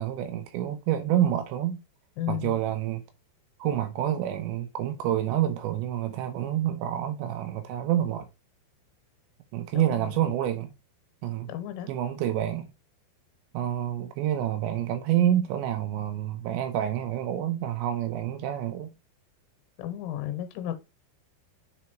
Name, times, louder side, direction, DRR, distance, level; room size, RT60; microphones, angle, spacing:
voice 1, 0.0-1.8 2.3-3.0 3.6-8.3 9.5-10.8 11.2-11.5 11.9-12.7 13.5-18.9, right 11 dB, 80° right, 2.8 m, -28 dB
voice 2, 2.2-2.6 9.7-10.2 11.5-11.9 19.8-20.8, left 11 dB, 85° left, 3.5 m, -33 dB
7.0 x 4.1 x 4.3 m
omnidirectional pair, 5.5 m